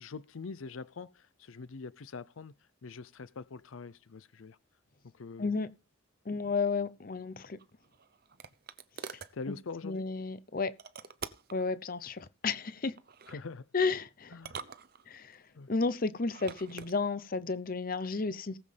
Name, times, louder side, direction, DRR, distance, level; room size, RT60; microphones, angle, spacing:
voice 1, 0.0-4.6 5.1-5.5 6.4-6.5 9.3-10.1 13.3-13.7 14.3-14.6 15.6-15.7, left 4 dB, 80° left, 0.6 m, -44 dB
voice 2, 6.3-7.6 9.8-10.7 11.5-12.9 13.7-14.3 15.1-15.4 15.7-18.6, left 4 dB, 45° left, 0.7 m, -32 dB
sound 1, 7.6-9.4 10.8-11.6 13.0-13.4 14.3-15.4 16.2-17.0, right 6 dB, 50° right, 0.7 m, -45 dB
19.0 x 7.5 x 3.4 m
head